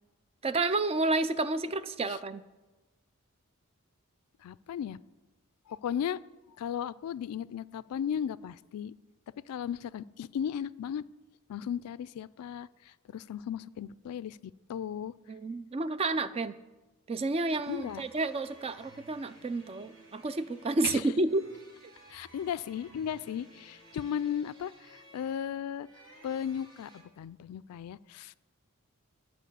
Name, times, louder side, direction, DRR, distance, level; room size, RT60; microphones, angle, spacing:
voice 1, 0.4-2.4 15.3-16.6 17.1-21.4, right 2 dB, 25° right, 13 dB, 0.4 m, -30 dB
voice 2, 4.4-5.0 5.7-6.2 6.6-8.9 9.5-11.0 11.5-15.1 17.7-18.0 20.8-21.0 22.1-25.9 26.2-28.3, left 8 dB, 80° left, 17 dB, 0.3 m, -36 dB
sound 1, 17.6-27.0, right 2 dB, 65° right, 2.9 m, -56 dB
11.5 x 4.6 x 8.3 m, 1.1 s
head